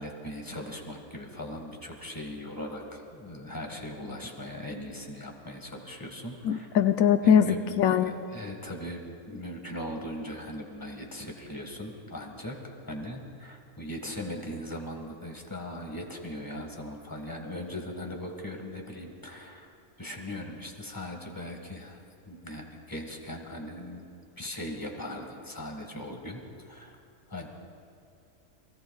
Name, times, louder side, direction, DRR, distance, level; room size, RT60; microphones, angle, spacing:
voice 1, 0.0-6.7 7.2-19.7 20.0-27.0 27.3-27.5, left 1 dB, 15° left, 2 dB, 1.7 m, -39 dB
voice 2, 6.5-8.1, left 8 dB, 80° left, 9 dB, 1.0 m, -22 dB
29.5 x 20.5 x 2.4 m, 2.6 s
omnidirectional pair, 1.4 m